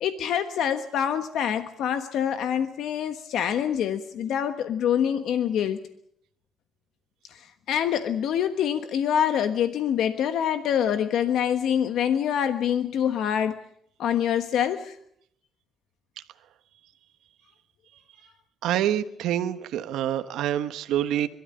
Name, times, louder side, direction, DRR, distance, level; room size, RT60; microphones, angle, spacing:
voice 1, 0.0-5.8 7.3-13.6 14.0-15.0, left 9 dB, 80° left, 9 dB, 1.3 m, -25 dB
voice 2, 18.6-21.3, right 11 dB, 90° right, 10 dB, 1.2 m, -26 dB
27.5 x 13.0 x 8.8 m, 0.70 s
cardioid pair, 90°, 0 cm